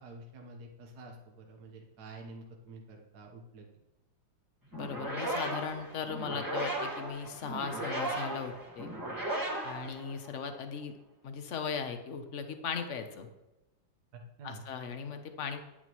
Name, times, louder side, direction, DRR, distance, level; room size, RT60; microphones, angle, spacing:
voice 1, 0.0-3.7 14.1-14.7, right 2 dB, 55° right, 0 dB, 1.6 m, -48 dB
voice 2, 4.7-8.9 9.6-10.9 11.2-13.3 14.4-15.6, left 6 dB, 50° left, 7 dB, 0.9 m, -38 dB
sound 1, 4.7-10.6, right 1 dB, 10° right, 1.5 m, -36 dB
10.5 x 9.9 x 3.1 m, 1.0 s
omnidirectional pair, 2.2 m